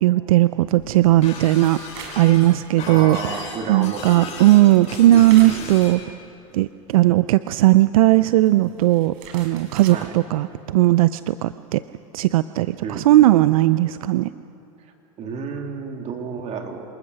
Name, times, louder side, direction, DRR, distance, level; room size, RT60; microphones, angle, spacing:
voice 1, 0.0-1.8 2.2-3.2 3.7-6.0 6.5-11.8 12.1-14.3, right 15 dB, 80° right, 15 dB, 0.5 m, -17 dB
sound 1, 0.8-2.3 2.7-2.9 4.1-4.2 4.4-6.3 6.6-6.7 8.2-10.0, right 6 dB, 65° right, 4.8 m, -42 dB
Shatter, 1.2-6.0, left 5 dB, 40° left, 5.8 m, -37 dB
voice 2, 2.8-4.8 5.1-5.7 9.9-10.1 12.8-13.3 15.2-16.8, right 5 dB, 40° right, 3 dB, 3.0 m, -32 dB
26.0 x 19.5 x 6.4 m, 3.0 s
supercardioid pair, 110°, 18 cm